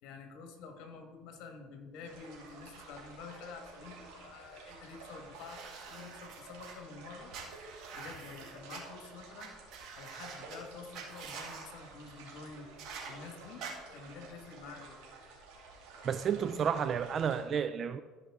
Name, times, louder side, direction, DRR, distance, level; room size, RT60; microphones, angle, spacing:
voice 1, 0.0-7.3 7.9-9.5 9.9-12.7 13.0-15.0 16.3-16.7, left 5 dB, 65° left, 1.6 m, -49 dB
sound 1, 2.0-17.5, right 3 dB, 80° right, 2.7 m, -52 dB
sound 2, 5.4-6.7 7.3-8.8 9.4-9.5 9.7-10.6 10.9-11.6 12.8-13.1 13.6-13.7, right 6 dB, 60° right, 1.9 m, -46 dB
voice 2, 16.0-18.0, right 7 dB, 40° right, 0.3 m, -31 dB
14.0 x 5.4 x 3.6 m
supercardioid pair, 105°, 0 cm